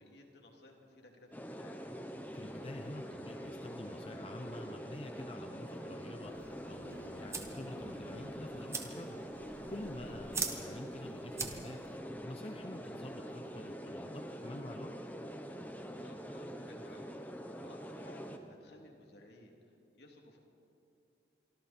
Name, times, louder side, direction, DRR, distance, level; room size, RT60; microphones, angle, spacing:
voice 1, 0.0-1.8 10.3-10.6 16.0-19.5 19.9-20.4, left 1 dB, 65° left, 1 dB, 3.0 m, -58 dB
sound 1, 1.3-18.4, equal, 10° left, 1.0 m, -45 dB
sound 2, 1.8-9.9, equal, 65° right, 3.3 m, -58 dB
voice 2, 2.3-9.2 9.7-11.8 12.2-14.9, left 1 dB, 30° left, 5 dB, 0.7 m, -47 dB
sound 3, 6.2-12.0, right 4 dB, 15° right, 1.3 m, -44 dB
27.0 x 24.0 x 4.4 m, 2.7 s
head